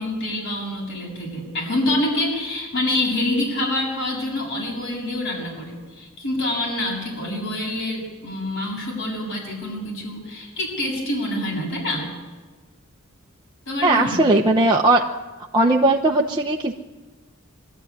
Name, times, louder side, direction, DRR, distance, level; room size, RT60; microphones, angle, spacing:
voice 1, 0.0-12.1 13.7-14.2, left 1 dB, 65° left, -3 dB, 7.3 m, -26 dB
voice 2, 13.8-15.0 15.5-16.7, right 2 dB, 20° right, -1 dB, 0.9 m, -18 dB
24.0 x 13.0 x 9.7 m, 1.3 s
head